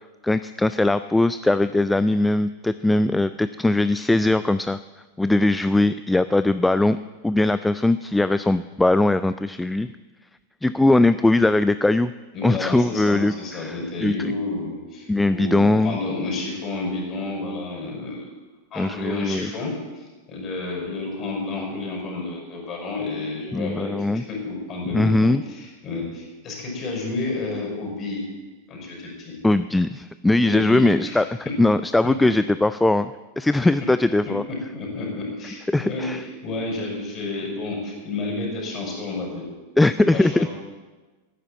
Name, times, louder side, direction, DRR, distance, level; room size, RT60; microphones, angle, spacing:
voice 1, 0.2-4.8 5.2-7.0 7.2-9.9 10.6-12.1 12.4-14.3 15.1-16.0 18.8-19.5 23.5-24.2 24.9-25.4 29.4-31.2 31.6-34.4 35.7-36.2 39.8-40.5, left 2 dB, 5° left, 13 dB, 0.3 m, -20 dB
voice 2, 12.3-18.3 18.7-28.3 28.7-29.4 30.4-31.5 34.7-39.4 39.9-40.5, left 3 dB, 30° left, -1 dB, 5.8 m, -30 dB
11.5 x 9.9 x 8.9 m, 1.3 s
figure-of-eight pair, 90°, 0 cm